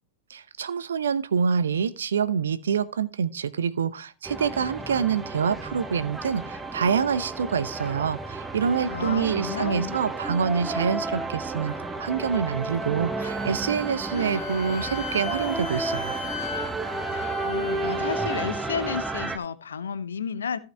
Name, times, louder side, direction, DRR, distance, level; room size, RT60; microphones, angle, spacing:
voice 1, 0.3-16.2, right 6 dB, 65° right, 15 dB, 0.6 m, -26 dB
sound 1, 4.2-19.4, right 3 dB, 10° right, 1.0 m, -32 dB
voice 2, 8.9-10.0 17.4-20.6, left 7 dB, 70° left, 16 dB, 0.7 m, -32 dB
Wind instrument woodwind instrument, 13.2-18.4, left 4 dB, 35° left, 2.4 m, -37 dB
15.0 x 5.7 x 3.3 m, 0.33 s
figure-of-eight pair, 90°, 0 cm